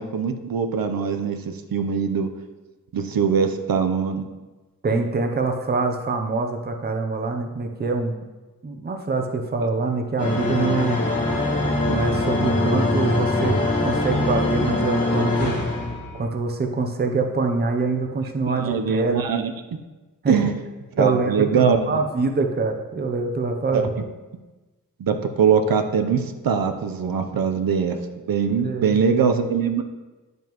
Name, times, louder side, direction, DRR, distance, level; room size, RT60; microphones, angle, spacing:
voice 1, 0.0-2.3 2.9-4.3 18.5-19.5 20.3-20.5 21.0-22.0 23.7-23.9 25.0-28.0 28.3-29.8, right 6 dB, 85° right, 6 dB, 0.7 m, -22 dB
voice 2, 4.8-8.3 8.6-11.0 11.9-15.6 16.1-19.2 20.2-20.5 21.0-23.9 28.6-29.0, right 3 dB, 30° right, 4 dB, 0.6 m, -25 dB
sound 1, 10.2-16.2, left 2 dB, 45° left, 1.7 m, -22 dB
11.0 x 5.3 x 3.0 m, 1.2 s
wide cardioid pair, 175°, 34 cm